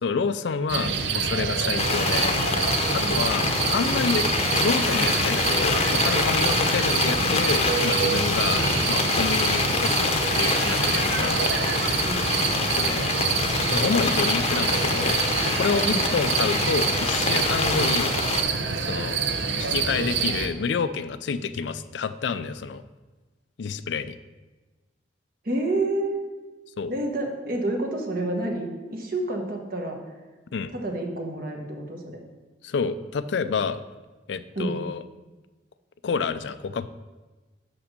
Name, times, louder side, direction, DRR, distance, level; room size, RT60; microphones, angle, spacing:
voice 1, 0.0-2.4 2.9-4.3 4.6-11.4 12.6-13.2 13.7-15.2 15.6-18.2 18.8-19.2 19.5-22.8 23.6-24.2 26.8-26.9 30.5-30.7 32.6-33.8 34.3-35.0 36.0-36.9, left 5 dB, 80° left, 12 dB, 0.4 m, -28 dB
sound 1, 0.7-20.5, right 5 dB, 80° right, 0.7 m, -26 dB
sound 2, 1.8-18.4, left 4 dB, 35° left, 0.7 m, -26 dB
voice 2, 25.4-26.2 26.9-30.0 30.7-32.0 34.5-34.8, right 2 dB, 55° right, 2 dB, 1.3 m, -29 dB
6.2 x 5.9 x 6.6 m, 1.2 s
head